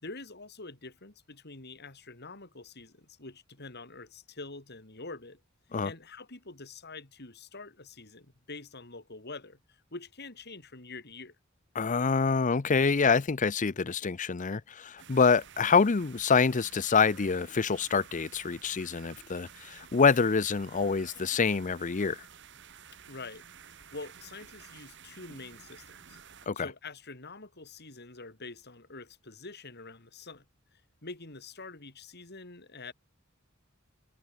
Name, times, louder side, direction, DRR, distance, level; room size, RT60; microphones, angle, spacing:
voice 1, 0.0-5.4 5.8-11.4 23.1-26.2 26.5-30.4 30.7-32.9, left 3 dB, 55° left, 4.5 m, -46 dB
voice 2, 11.7-22.2 26.5-26.7, left 5 dB, 40° left, 0.6 m, -26 dB
sound 1, 15.0-26.5, right 7 dB, 60° right, 4.1 m, -52 dB
head